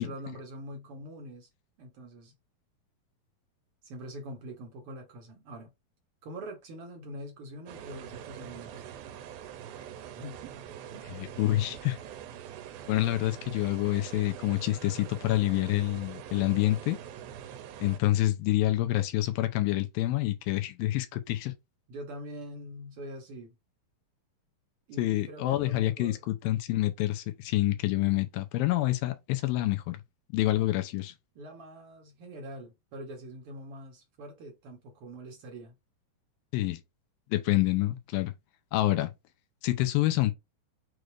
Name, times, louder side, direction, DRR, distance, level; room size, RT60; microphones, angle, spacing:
voice 1, 0.0-1.5 1.8-2.3 3.8-5.7 6.2-8.8 10.1-10.5 10.9-11.2 21.9-23.5 24.9-26.2 31.3-35.7, right 1 dB, 70° right, 1.3 m, -44 dB
sound 1, 7.7-18.0, right 9 dB, 90° right, 2.4 m, -44 dB
voice 2, 11.1-12.0 12.9-17.0 17.8-21.5 25.0-30.0 30.3-31.1 36.5-36.8 37.3-38.3 38.7-39.1 39.6-40.3, left 16 dB, 80° left, 2.3 m, -27 dB
6.3 x 2.5 x 3.2 m
omnidirectional pair, 4.2 m